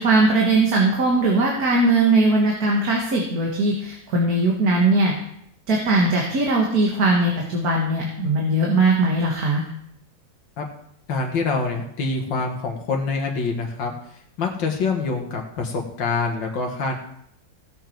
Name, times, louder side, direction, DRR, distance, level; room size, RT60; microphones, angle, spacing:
voice 1, 0.0-5.1 5.7-9.6, right 2 dB, 55° right, -1 dB, 2.1 m, -19 dB
voice 2, 11.1-14.0 14.4-17.0, left 4 dB, 90° left, 2 dB, 2.1 m, -25 dB
17.0 x 7.1 x 4.6 m, 0.72 s
omnidirectional pair, 2.0 m